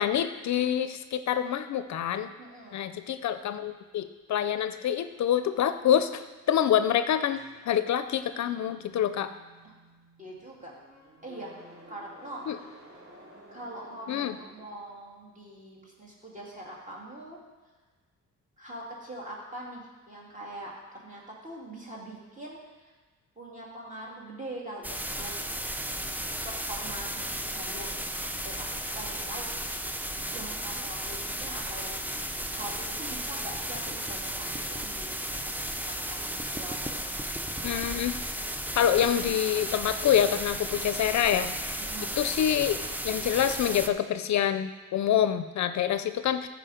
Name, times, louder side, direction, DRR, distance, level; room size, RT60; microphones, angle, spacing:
voice 1, 0.0-2.3 2.7-9.3 12.5-12.6 14.1-14.4 37.6-38.1 38.8-41.5 42.2-46.5, left 10 dB, 65° left, 11 dB, 0.5 m, -26 dB
voice 2, 2.4-2.9 9.6-9.7 10.2-10.7 11.2-11.5 11.9-12.4 13.5-17.4 18.6-22.9 23.4-25.3 26.4-28.0 28.4-28.7 28.9-29.5 30.3-32.0 32.5-35.1 35.4-37.2 41.8-42.1, right 1 dB, 25° right, -3 dB, 2.5 m, -43 dB
sound 1, 7.2-15.2, equal, 45° right, 2.2 m, -53 dB
sound 2, 24.8-43.9, equal, 5° right, 0.4 m, -34 dB
14.0 x 5.0 x 5.0 m, 1.3 s
cardioid pair, 135°, 31 cm